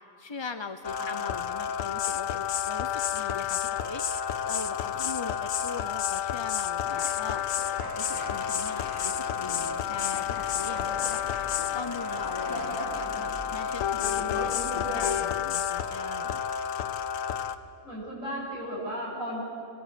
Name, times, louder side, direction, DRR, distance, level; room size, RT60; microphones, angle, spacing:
voice 1, 0.2-7.4 8.0-11.2 11.7-16.4, left 4 dB, 35° left, 8 dB, 0.4 m, -41 dB
sound 1, 0.8-17.6, left 9 dB, 70° left, 1.2 m, -30 dB
sound 2, 6.9-15.1, equal, 15° left, 4.1 m, -40 dB
sound 3, 10.2-15.5, right 1 dB, 25° right, 1.5 m, -48 dB
voice 2, 17.8-19.4, equal, 65° right, -5 dB, 8.6 m, -35 dB
25.5 x 19.5 x 8.4 m, 2.8 s
omnidirectional pair, 1.5 m